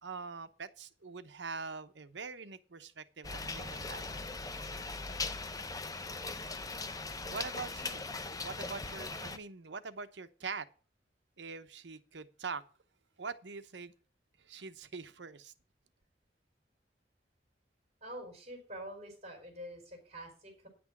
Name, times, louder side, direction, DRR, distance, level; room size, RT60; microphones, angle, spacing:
voice 1, 0.0-4.1 6.9-8.0 8.4-10.7 11.4-12.6 13.2-13.9 14.4-15.5, right 4 dB, 90° right, 0.9 m, -43 dB
sound 1, 3.2-9.4, left 3 dB, 20° left, 0.8 m, -40 dB
voice 2, 18.0-20.7, equal, 40° right, 3.8 m, -46 dB
9.7 x 6.1 x 7.2 m
head